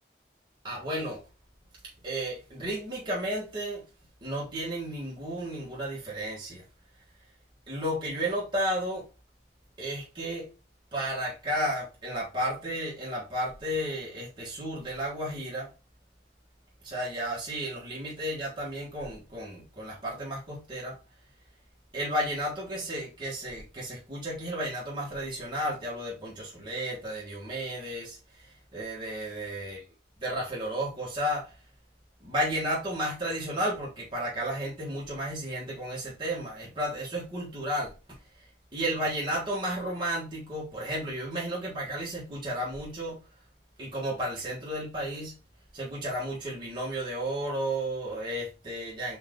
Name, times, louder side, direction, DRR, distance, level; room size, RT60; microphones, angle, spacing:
voice 1, 0.6-1.2 2.0-3.8 4.2-6.6 7.7-9.1 9.8-10.5 10.9-15.7 16.8-21.0 21.9-29.8 30.2-31.5 32.2-37.9 38.7-43.2 43.8-45.4 45.7-49.2, right 1 dB, 25° right, 1.6 m, -33 dB
4.4 x 2.8 x 3.7 m
head